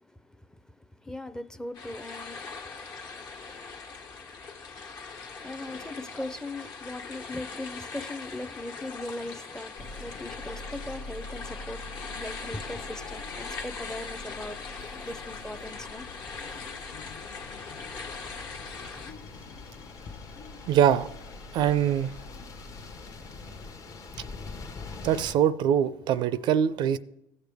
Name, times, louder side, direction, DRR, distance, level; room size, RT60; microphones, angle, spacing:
voice 1, 0.0-14.6 15.0-16.1, left 1 dB, 5° left, 0.5 m, -40 dB
sound 1, 1.7-19.1, left 4 dB, 55° left, 1.3 m, -41 dB
sound 2, 9.8-23.7, left 3 dB, 75° left, 0.8 m, -45 dB
sound 3, 16.4-25.3, left 4 dB, 40° left, 0.9 m, -45 dB
voice 2, 20.7-21.1 21.5-22.1 25.0-27.0, right 9 dB, 60° right, 0.4 m, -23 dB
15.5 x 6.5 x 3.5 m
supercardioid pair, 85°, 9 cm